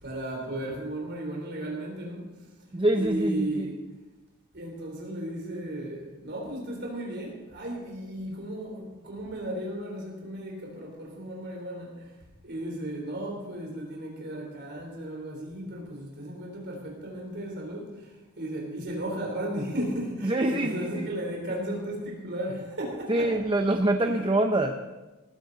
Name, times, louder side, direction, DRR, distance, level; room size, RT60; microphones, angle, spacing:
voice 1, 0.0-2.3 2.9-3.7 4.5-12.1 12.4-23.3 24.0-24.2, right 1 dB, 55° right, -1 dB, 3.6 m, -35 dB
voice 2, 2.7-3.8 20.2-21.1 23.1-24.7, right 1 dB, 25° right, 5 dB, 0.7 m, -25 dB
19.5 x 15.0 x 4.0 m, 1.1 s
head